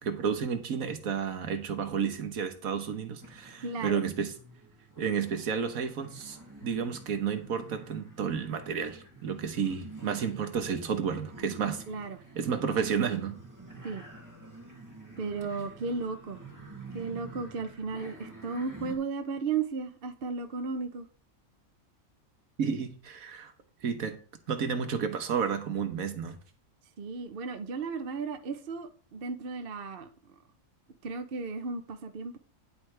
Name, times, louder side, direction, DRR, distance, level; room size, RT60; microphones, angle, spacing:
voice 1, 0.0-4.3 5.0-11.8 12.4-13.4 22.6-23.5 23.8-24.2 24.5-26.4, right 6 dB, 85° right, 1.6 m, -31 dB
sound 1, 3.2-19.0, right 2 dB, 15° right, 2.3 m, -48 dB
voice 2, 3.6-4.0 11.9-12.2 13.8-14.0 15.2-16.4 16.9-21.1 27.0-30.1 31.0-32.4, right 4 dB, 50° right, 0.9 m, -35 dB
10.0 x 8.2 x 3.3 m
omnidirectional pair, 1.4 m